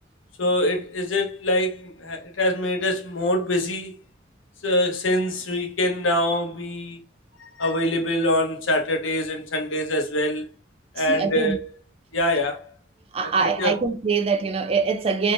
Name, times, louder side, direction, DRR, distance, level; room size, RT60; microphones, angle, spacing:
voice 1, 0.4-3.9 4.6-7.0 7.4-10.5 10.9-11.6 12.1-12.7 13.2-13.8, left 1 dB, 85° left, 0.9 m, -24 dB
voice 2, 11.1-11.6 13.1-15.3, right 4 dB, 30° right, 0.3 m, -23 dB
3.5 x 2.7 x 2.7 m
head